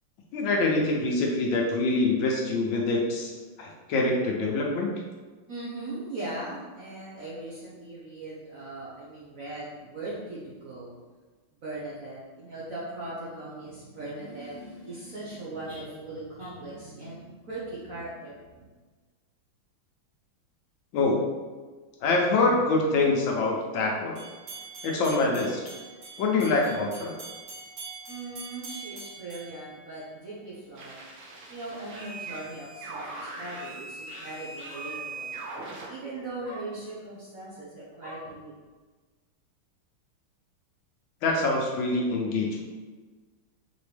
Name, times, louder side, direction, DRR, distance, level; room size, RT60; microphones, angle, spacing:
voice 1, 0.3-3.3 3.6-4.9 20.9-21.2 22.0-24.1 24.8-25.6 26.2-27.1 41.2-42.5, left 3 dB, 75° left, 0 dB, 1.4 m, -25 dB
voice 2, 5.5-10.9 11.6-18.6 28.1-31.0 31.5-38.5, right 2 dB, 55° right, -7 dB, 1.0 m, -39 dB
sound 1, 24.2-30.4, right 4 dB, 70° right, 2.3 m, -44 dB
sound 2, 30.8-35.9, right 3 dB, 90° right, 1.9 m, -40 dB
5.1 x 3.0 x 3.3 m, 1.3 s
omnidirectional pair, 2.3 m